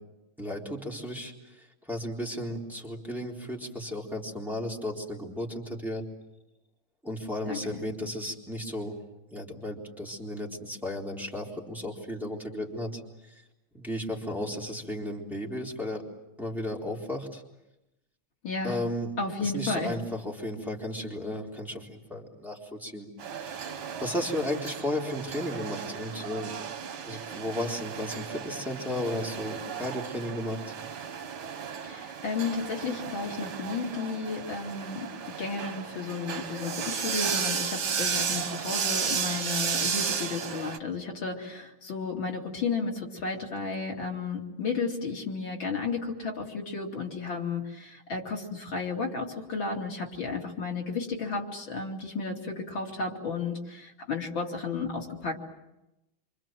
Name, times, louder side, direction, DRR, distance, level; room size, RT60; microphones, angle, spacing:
voice 1, 0.4-1.3 1.9-6.0 7.0-8.9 9.3-13.0 13.7-16.0 16.4-17.4 18.6-19.1 19.4-23.1 23.3-26.5 27.0-30.7, left 1 dB, ahead, -2 dB, 3.8 m, -34 dB
voice 2, 7.5-7.8 18.4-18.8 19.2-20.0 31.8-35.1 35.4-55.4, left 4 dB, 75° left, 0 dB, 3.5 m, -33 dB
sound 1, 23.2-40.8, right 7 dB, 90° right, 2.2 m, -34 dB
27.5 x 26.0 x 7.7 m, 0.93 s
omnidirectional pair, 2.2 m